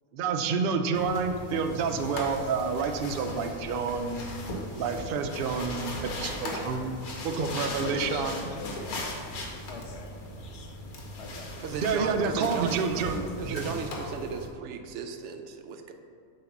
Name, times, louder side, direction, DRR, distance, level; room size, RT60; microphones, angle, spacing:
voice 1, 0.1-4.2 4.8-8.4 9.3-9.5 11.7-13.7, right 5 dB, 90° right, 6 dB, 0.4 m, -29 dB
sound 1, 0.9-14.5, left 1 dB, 90° left, 1.5 m, -38 dB
voice 2, 5.7-6.2 6.5-6.6 7.8-9.2 9.7-10.8 11.2-11.6, left 4 dB, 65° left, 3 dB, 0.8 m, -42 dB
voice 3, 11.6-13.0 13.4-15.9, right 5 dB, 65° right, 6 dB, 0.8 m, -36 dB
7.1 x 2.9 x 5.9 m, 2.4 s
omnidirectional pair, 1.5 m